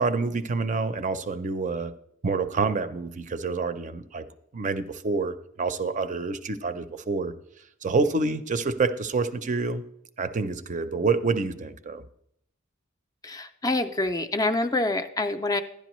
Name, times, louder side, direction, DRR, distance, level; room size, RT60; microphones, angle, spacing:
voice 1, 0.0-1.9 2.2-4.3 4.5-7.3 7.8-9.8 10.2-12.0, right 4 dB, 40° right, 11 dB, 0.5 m, -27 dB
voice 2, 13.2-15.6, left 2 dB, 20° left, 9 dB, 0.4 m, -26 dB
11.0 x 10.5 x 3.0 m, 0.73 s
head